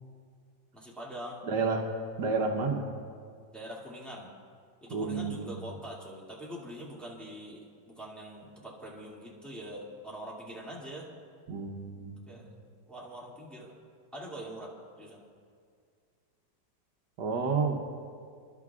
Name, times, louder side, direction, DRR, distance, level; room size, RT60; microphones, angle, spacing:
voice 1, 0.7-1.4 3.5-4.3 4.8-11.1 12.3-12.5 12.9-13.7 14.1-15.2, equal, ahead, -5 dB, 2.2 m, -43 dB
voice 2, 1.5-1.8 2.2-2.8 4.9-5.6 11.5-12.2 17.2-17.8, right 4 dB, 75° right, 2 dB, 1.6 m, -30 dB
29.5 x 12.0 x 2.4 m, 2.2 s
omnidirectional pair, 1.9 m